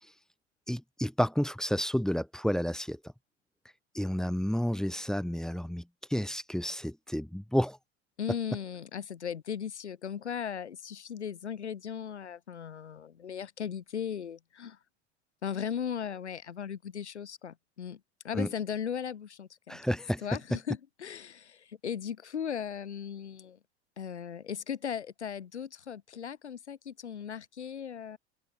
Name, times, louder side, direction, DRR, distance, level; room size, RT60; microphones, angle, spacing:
voice 1, 0.7-3.0 3.9-5.8 6.1-7.8 18.3-18.5 19.7-20.2, equal, ahead, 2.1 m, -30 dB
voice 2, 8.2-14.8 15.4-18.0 18.2-19.8 20.2-23.6 24.0-28.2, left 8 dB, 75° left, 6.4 m, -37 dB
figure-of-eight pair, 75°, 34 cm